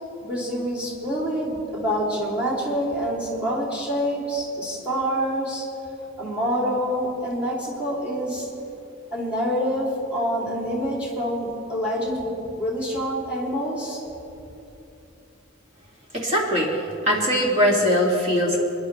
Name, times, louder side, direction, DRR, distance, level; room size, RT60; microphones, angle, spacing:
voice 1, 0.2-5.6 6.2-8.5 9.1-14.0, equal, 5° right, -4 dB, 3.1 m, -26 dB
voice 2, 16.1-18.6, equal, 35° right, -3 dB, 2.3 m, -21 dB
27.0 x 10.5 x 3.4 m, 2.9 s
head